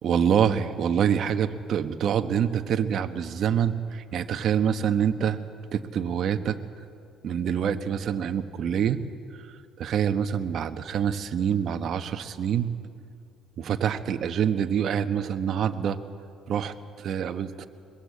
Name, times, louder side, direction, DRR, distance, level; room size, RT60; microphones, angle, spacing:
voice 1, 0.0-5.4 5.7-6.6 7.2-9.0 9.8-12.7 13.6-16.0 16.5-17.7, right 8 dB, 55° right, 7 dB, 1.3 m, -26 dB
22.5 x 22.0 x 8.5 m, 2.3 s
cardioid pair, 105°, 0 cm